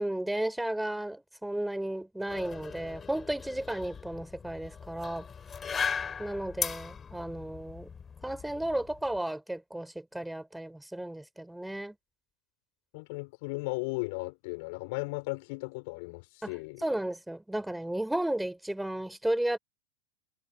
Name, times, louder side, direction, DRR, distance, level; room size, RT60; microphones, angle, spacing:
voice 1, 0.0-5.3 6.2-7.9 8.2-11.9 16.4-16.5 16.8-19.6, right 1 dB, 5° right, 4.4 m, -33 dB
sound 1, 2.3-9.2, left 6 dB, 20° left, 3.4 m, -38 dB
voice 2, 12.9-16.8, left 28 dB, 45° left, 4.6 m, -36 dB
figure-of-eight pair, 90°, 0 cm